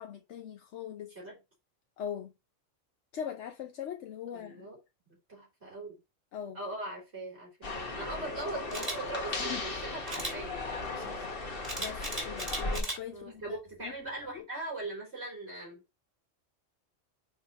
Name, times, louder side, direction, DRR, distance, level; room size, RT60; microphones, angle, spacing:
voice 1, 0.0-1.2 2.0-2.3 3.1-4.7 6.3-6.6 9.4-9.6 11.8-13.9 14.2-14.5, left 9 dB, 70° left, 1.0 m, -41 dB
voice 2, 4.3-4.8 5.1-6.0 6.5-11.3 12.0-12.3 13.1-15.8, right 2 dB, 60° right, 4.0 m, -41 dB
sound 1, 7.6-12.8, left 3 dB, 50° left, 1.6 m, -37 dB
Camera, 8.7-9.0 10.1-10.3 11.6-13.0 13.5-13.7, right 1 dB, 30° right, 3.2 m, -36 dB
9.3 x 3.7 x 4.1 m
omnidirectional pair, 1.3 m